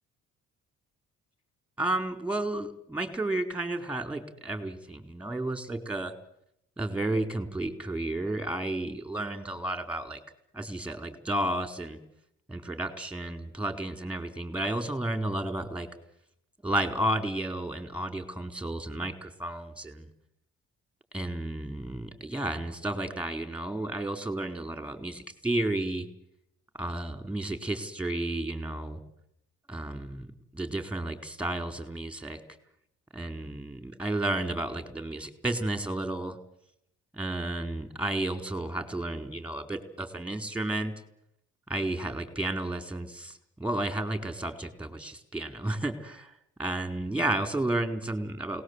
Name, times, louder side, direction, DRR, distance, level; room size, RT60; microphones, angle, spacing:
voice 1, 1.8-6.1 6.8-10.2 10.5-12.0 12.5-15.9 16.6-20.1 21.1-26.1 26.7-29.0 29.7-32.4 33.1-36.4 37.1-40.9 41.7-46.3 46.6-48.6, right 1 dB, 5° right, 8 dB, 4.3 m, -32 dB
29.0 x 19.0 x 8.2 m, 0.79 s
supercardioid pair, 65°, 31 cm